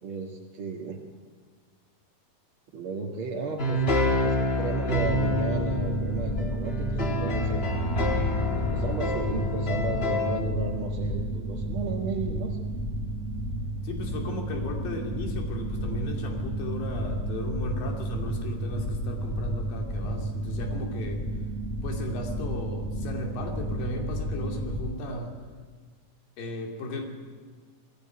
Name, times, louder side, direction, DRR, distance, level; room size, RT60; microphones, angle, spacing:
voice 1, 0.0-1.0 2.7-3.8 4.2-7.7 8.7-12.6, right 3 dB, 45° right, -2 dB, 2.0 m, -34 dB
sound 1, 3.6-10.4, left 1 dB, 35° left, 0.9 m, -27 dB
sound 2, 5.0-24.9, right 1 dB, ahead, 4.1 m, -32 dB
voice 2, 13.8-21.2 21.8-25.4 26.4-27.1, left 1 dB, 75° left, 2 dB, 4.4 m, -35 dB
20.5 x 15.0 x 9.3 m, 1.5 s
omnidirectional pair, 4.1 m